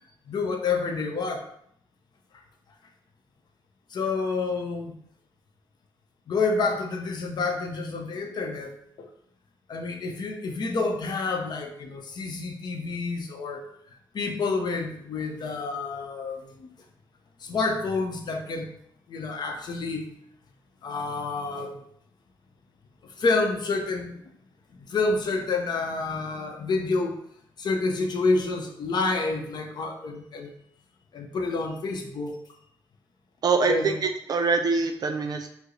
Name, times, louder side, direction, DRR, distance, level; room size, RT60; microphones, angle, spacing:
voice 1, 0.3-1.5 3.9-4.9 6.3-8.7 9.0-9.1 9.7-13.6 14.1-16.7 17.4-18.7 19.1-20.1 20.8-21.8 23.2-24.2 24.8-27.2 27.6-30.5 31.1-32.4 33.7-34.0, left 3 dB, 60° left, 3 dB, 0.6 m, -28 dB
voice 2, 33.4-35.5, right 4 dB, 50° right, 5 dB, 0.4 m, -24 dB
4.4 x 2.0 x 3.1 m, 0.70 s
cardioid pair, 75°, 8 cm